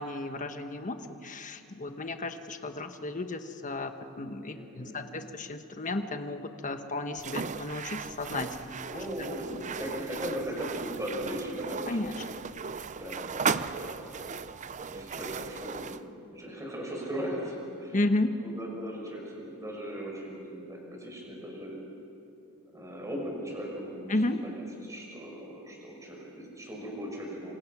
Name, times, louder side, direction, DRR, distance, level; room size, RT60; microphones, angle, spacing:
voice 1, 0.0-8.6 8.9-9.0 11.9-12.1 17.9-18.3 24.1-24.5, left 2 dB, 35° left, 7 dB, 1.2 m, -33 dB
voice 2, 4.4-5.0 8.6-12.3 13.0-14.3 14.9-18.0 18.4-21.8 22.7-27.5, equal, 15° right, -2 dB, 6.9 m, -38 dB
sound 1, 7.2-16.0, right 5 dB, 35° right, 0.6 m, -36 dB
27.0 x 26.5 x 6.1 m, 2.7 s
head